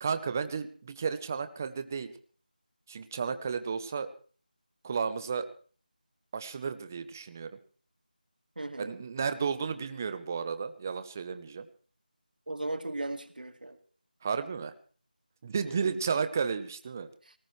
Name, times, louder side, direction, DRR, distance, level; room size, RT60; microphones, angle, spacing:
voice 1, 0.0-2.1 2.9-4.1 4.8-5.5 6.3-7.6 8.8-11.7 14.2-14.7 15.4-17.1, right 6 dB, 20° right, 12 dB, 0.7 m, -33 dB
voice 2, 8.6-9.0 12.5-13.8 15.6-16.0 17.3-17.4, right 2 dB, 70° right, 9 dB, 2.1 m, -37 dB
20.5 x 18.5 x 3.2 m, 0.42 s
figure-of-eight pair, 170°, 5 cm